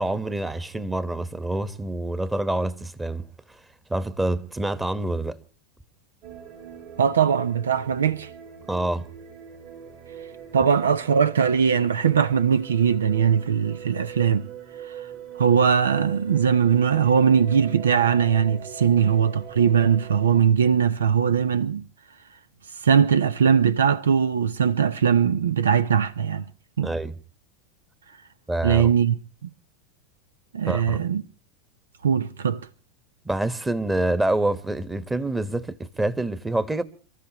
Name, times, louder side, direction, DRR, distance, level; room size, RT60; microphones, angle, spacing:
voice 1, 0.0-3.6 3.9-5.4 8.7-9.1 26.8-27.2 28.5-28.9 30.7-31.0 33.2-36.8, right 2 dB, 10° right, 1.3 m, -26 dB
sound 1, 6.2-20.4, right 9 dB, 50° right, 5.8 m, -41 dB
voice 2, 7.0-8.3 10.5-14.5 15.4-21.8 22.8-26.4 26.8-26.9 28.6-29.1 30.5-31.2 32.0-32.6, right 7 dB, 80° right, 0.7 m, -20 dB
29.0 x 14.0 x 3.0 m
hypercardioid pair, 90°, 0 cm